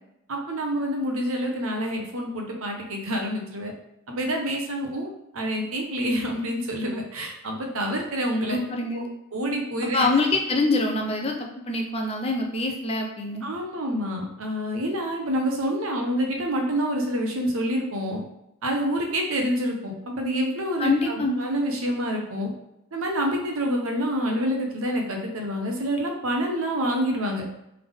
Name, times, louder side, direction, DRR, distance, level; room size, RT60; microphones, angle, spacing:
voice 1, 0.3-3.7 4.1-8.6 8.9-9.0 9.3-10.1 13.4-18.2 18.6-20.9 21.2-22.5 22.9-27.4, equal, 85° right, 2 dB, 0.9 m, -27 dB
voice 2, 8.5-9.1 9.8-13.5 20.8-21.5, left 2 dB, 30° left, 2 dB, 0.6 m, -25 dB
3.5 x 3.5 x 3.5 m, 0.83 s
head